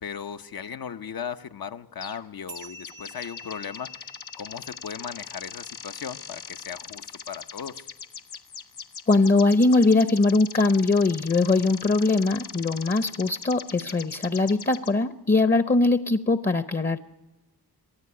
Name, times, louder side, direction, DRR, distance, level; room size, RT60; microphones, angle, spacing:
voice 1, 0.0-4.1 4.4-7.8, left 7 dB, 65° left, 8 dB, 0.9 m, -37 dB
sound 1, 2.0-2.3 2.6-14.9, left 7 dB, 85° left, 1.1 m, -41 dB
sound 2, 2.5-7.3, left 1 dB, 80° right, 1.1 m, -48 dB
voice 2, 9.1-17.0, left 3 dB, 25° left, 11 dB, 0.7 m, -21 dB
23.5 x 14.0 x 9.7 m, 1.0 s
wide cardioid pair, 80°, 38 cm